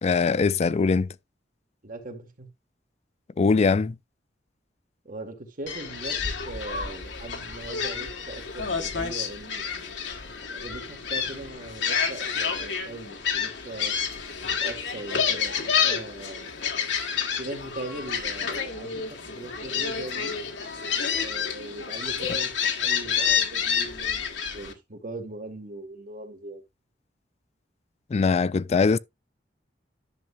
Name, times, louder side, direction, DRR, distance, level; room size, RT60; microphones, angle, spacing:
voice 1, 0.0-1.1 3.4-4.0 28.1-29.0, left 4 dB, 35° left, 0.4 m, -21 dB
voice 2, 1.8-2.5 5.0-6.2 6.4-10.0 10.5-13.9 14.4-16.5 17.4-20.4 21.1-22.5 22.8-24.2 24.5-26.6, right 2 dB, 50° right, 1.9 m, -40 dB
Gull seagull, 5.7-24.7, left 7 dB, 75° left, 1.7 m, -29 dB
11.0 x 7.1 x 2.6 m
head